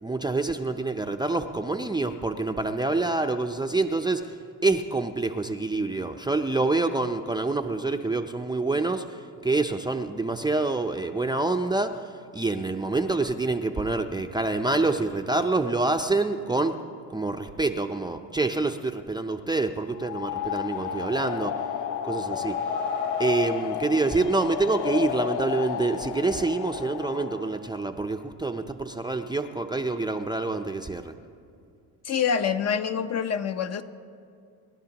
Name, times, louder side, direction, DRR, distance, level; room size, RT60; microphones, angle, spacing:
voice 1, 0.0-4.4 4.6-16.8 17.1-21.6 22.0-22.6 23.2-31.1, right 3 dB, 10° right, 6 dB, 0.6 m, -27 dB
sound 1, 19.9-27.6, left 8 dB, 80° left, 0.7 m, -31 dB
voice 2, 32.0-33.8, left 7 dB, 40° left, 8 dB, 0.9 m, -26 dB
28.5 x 11.5 x 2.9 m, 2.4 s
cardioid pair, 95°, 38 cm